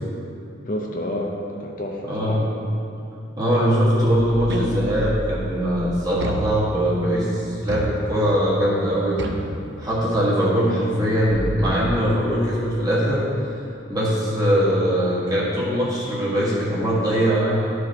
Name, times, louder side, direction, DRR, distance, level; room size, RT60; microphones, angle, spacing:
voice 1, 0.7-2.4 9.2-9.6, equal, 40° left, 0 dB, 0.6 m, -30 dB
voice 2, 2.1-2.4 3.4-9.2 9.8-13.2 13.9-17.7, equal, 20° right, -7 dB, 1.5 m, -21 dB
sound 1, 4.1-5.6 11.2-14.3, equal, 75° left, 1.5 m, -32 dB
sound 2, 4.5-5.2 6.2-7.0 7.7-8.5 9.2-10.2, right 1 dB, 60° right, 0.6 m, -31 dB
11.5 x 4.9 x 3.1 m, 2.6 s
head